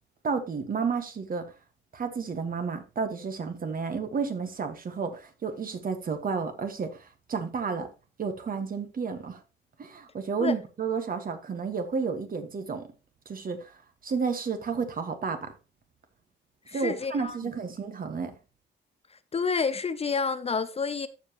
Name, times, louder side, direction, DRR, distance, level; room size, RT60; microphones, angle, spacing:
voice 1, 0.2-1.5 1.9-7.9 8.2-9.4 9.8-12.9 13.3-15.5 16.7-18.3, right 5 dB, 45° right, 1.7 m, -31 dB
voice 2, 16.7-17.4 19.3-21.1, left 5 dB, 30° left, 0.6 m, -29 dB
14.5 x 5.1 x 3.0 m
cardioid pair, 90°, 20 cm